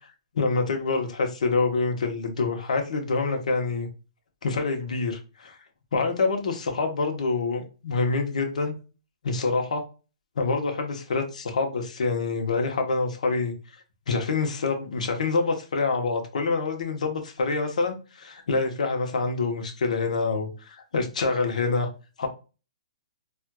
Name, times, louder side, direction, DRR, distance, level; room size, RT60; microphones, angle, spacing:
voice 1, 0.3-3.9 4.4-5.6 5.9-8.7 9.2-9.8 10.4-13.5 14.1-21.9 22.2-22.3, left 4 dB, 80° left, 0.9 m, -26 dB
4.4 x 2.4 x 2.2 m
hypercardioid pair, 150°, 4 cm